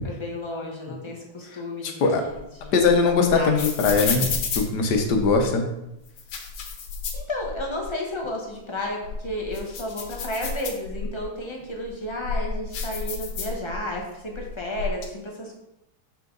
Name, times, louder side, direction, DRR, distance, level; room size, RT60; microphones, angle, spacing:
voice 1, 0.0-2.9 3.3-3.7 7.1-15.6, left 1 dB, 25° left, -1 dB, 0.6 m, -32 dB
sound 1, 2.0-5.5 6.1-7.9 8.2-8.3 8.8-11.2 11.8-14.0 14.2-15.0, left 5 dB, 80° left, 1.9 m, -31 dB
voice 2, 2.7-4.3 4.6-5.6, left 4 dB, 60° left, 4 dB, 1.4 m, -20 dB
6.8 x 5.6 x 3.9 m, 0.88 s
omnidirectional pair, 2.4 m